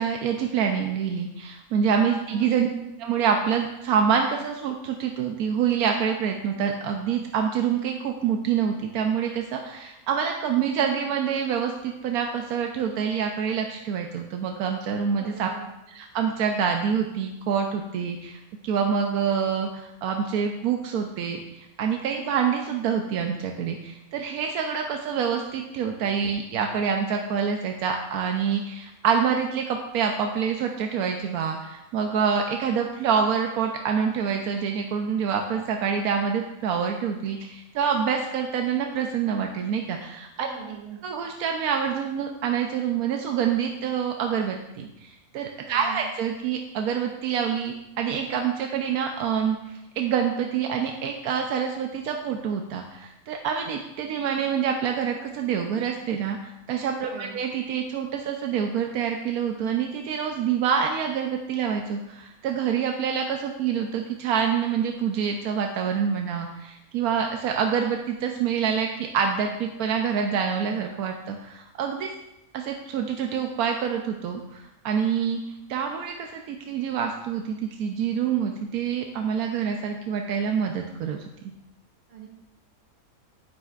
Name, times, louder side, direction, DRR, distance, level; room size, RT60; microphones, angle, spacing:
voice 1, 0.0-2.7 3.0-15.5 15.9-40.5 41.0-49.6 50.0-56.4 56.7-72.1 72.5-81.2, right 7 dB, 90° right, 3 dB, 1.2 m, -26 dB
voice 2, 2.2-2.6 15.2-15.6 40.4-41.0 45.6-46.1 57.0-57.4 82.1-82.3, right 7 dB, 60° right, -3 dB, 2.5 m, -41 dB
9.5 x 9.0 x 2.4 m, 0.91 s
omnidirectional pair, 1.5 m